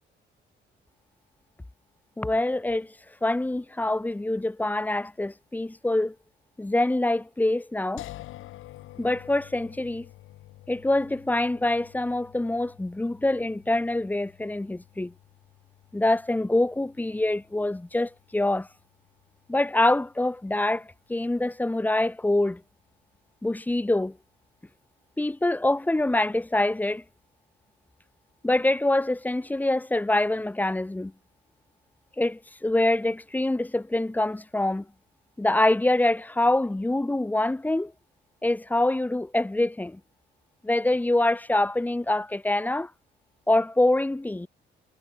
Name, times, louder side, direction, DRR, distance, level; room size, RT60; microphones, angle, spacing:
voice 1, 2.2-2.9 3.2-6.1 6.6-8.0 9.0-10.1 10.7-15.1 15.9-18.7 19.5-22.6 23.4-24.2 25.2-27.0 28.4-31.1 32.2-34.9 35.4-37.9 38.4-40.0 40.6-42.9 43.5-44.5, left 2 dB, 10° left, 0.7 m, -25 dB
sound 1, 8.0-21.0, left 15 dB, 90° left, 4.0 m, -50 dB
cardioid pair, 90°, 20 cm